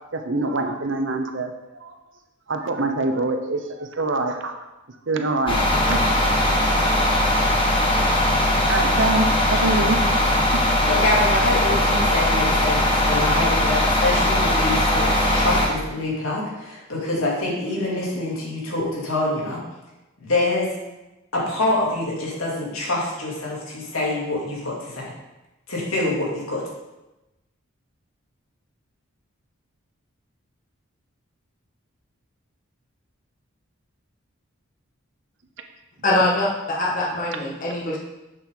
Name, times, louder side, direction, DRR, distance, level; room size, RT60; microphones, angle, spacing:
voice 1, 0.1-1.9 2.5-4.6 5.1-5.6 5.9-6.0 7.0-7.2 8.7-10.0 10.5-10.7, right 2 dB, 60° right, 5 dB, 0.8 m, -25 dB
sound 1, 5.5-15.7, left 1 dB, 25° left, 1.3 m, -20 dB
voice 2, 10.9-15.1 15.3-19.6 20.2-20.7 21.3-25.1 25.7-26.6, left 2 dB, 85° left, -5 dB, 2.9 m, -25 dB
voice 3, 36.0-38.0, left 1 dB, 40° left, -4 dB, 1.7 m, -23 dB
7.8 x 7.1 x 3.9 m, 1.0 s
head